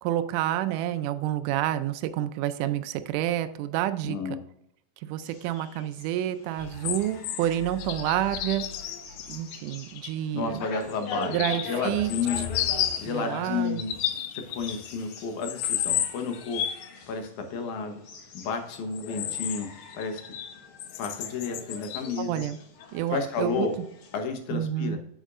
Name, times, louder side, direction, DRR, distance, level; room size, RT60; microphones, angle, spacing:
voice 1, 0.0-4.4 5.0-8.7 9.3-10.7 11.2-12.1 12.4-12.5 13.0-13.8 22.2-22.6 22.9-23.7 24.5-25.0, right 12 dB, 85° right, 10 dB, 2.1 m, -29 dB
voice 2, 4.0-4.4 10.3-12.5 13.0-13.9 14.3-16.6 17.1-18.0 18.3-19.7 19.9-20.2 21.0-22.4 23.1-23.7 24.1-25.0, left 5 dB, 75° left, 5 dB, 2.5 m, -31 dB
sound 1, 5.2-24.2, left 3 dB, 55° left, 1.8 m, -44 dB
sound 2, 6.6-10.1 10.8-13.2 13.7-15.1 15.4-16.9 18.7-20.5 20.8-22.1 22.8-22.9, left 11 dB, 90° left, 2.3 m, -32 dB
8.9 x 7.3 x 2.5 m, 0.75 s
omnidirectional pair, 3.6 m